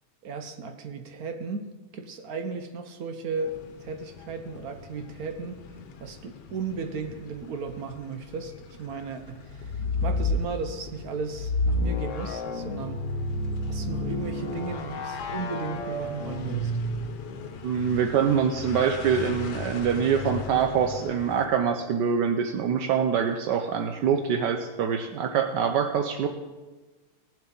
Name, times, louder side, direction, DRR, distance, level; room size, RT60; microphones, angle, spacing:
voice 1, 0.2-3.5 3.8-5.6 6.0-9.7 10.0-13.1 13.7-16.8, right 4 dB, 65° right, 7 dB, 1.2 m, -35 dB
sound 1, 3.4-21.5, left 5 dB, 80° left, 1.5 m, -42 dB
sound 2, 9.5-10.5 11.3-17.3, left 1 dB, 60° left, 0.9 m, -30 dB
voice 2, 17.6-26.3, right 7 dB, 80° right, 5 dB, 1.3 m, -25 dB
18.0 x 7.5 x 3.9 m, 1.2 s
omnidirectional pair, 1.8 m